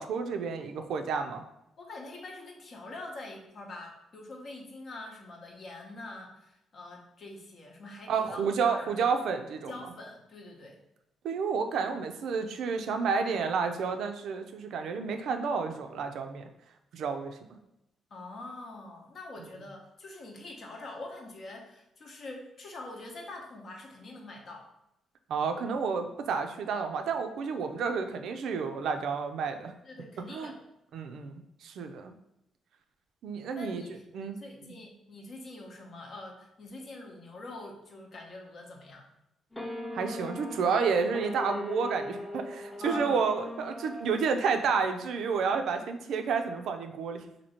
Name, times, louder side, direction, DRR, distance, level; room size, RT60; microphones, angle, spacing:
voice 1, 0.0-1.4 8.1-9.7 11.2-16.5 16.9-17.4 25.3-29.7 30.3-30.5 30.9-32.1 33.2-34.4 39.9-47.2, right 5 dB, 75° right, 6 dB, 0.4 m, -30 dB
voice 2, 1.8-8.9 9.6-10.8 18.1-24.7 29.8-30.6 33.5-39.1 42.8-43.2, left 2 dB, 55° left, 1 dB, 0.8 m, -45 dB
sound 1, 39.5-45.1, left 1 dB, 5° left, 0.6 m, -39 dB
2.9 x 2.7 x 4.2 m, 0.86 s
cardioid pair, 90°, 0 cm